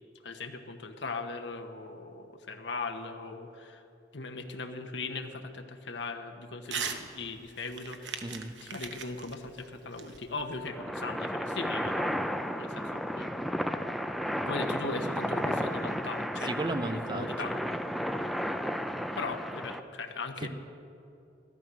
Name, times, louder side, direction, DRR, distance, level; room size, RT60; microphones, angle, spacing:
voice 1, 0.2-3.8 4.1-8.2 8.6-12.1 12.6-13.6 14.4-16.7 17.1-17.5 19.1-20.5, left 3 dB, 80° left, 5 dB, 1.1 m, -39 dB
Crumpling crinkling / Tearing, 6.6-7.0 7.4-10.7, right 7 dB, 80° right, 1.0 m, -39 dB
voice 2, 8.2-8.5 16.4-17.6 20.4-20.5, right 2 dB, 25° right, 8 dB, 0.8 m, -34 dB
sound 1, 10.6-19.8, equal, ahead, 0.5 m, -33 dB
14.5 x 12.5 x 6.2 m, 2.7 s
head